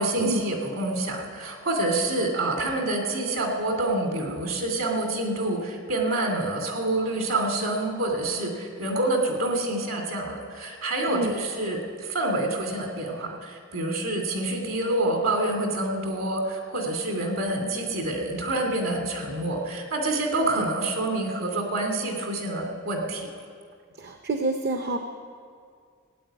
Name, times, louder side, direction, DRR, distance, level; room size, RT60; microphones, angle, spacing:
voice 1, 0.0-23.3, right 2 dB, 70° right, 2 dB, 2.6 m, -27 dB
voice 2, 24.0-25.0, right 2 dB, 55° right, 5 dB, 0.8 m, -28 dB
16.5 x 8.9 x 9.0 m, 2.2 s
head